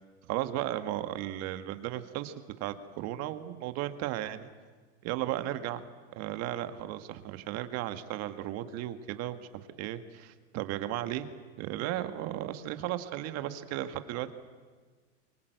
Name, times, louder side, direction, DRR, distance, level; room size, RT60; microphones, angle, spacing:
voice 1, 0.3-2.3 2.6-4.5 5.0-5.8 6.2-11.3 11.6-14.3, right 13 dB, 45° right, 10 dB, 1.6 m, -35 dB
24.0 x 24.0 x 7.9 m, 1.5 s
supercardioid pair, 130°, 36 cm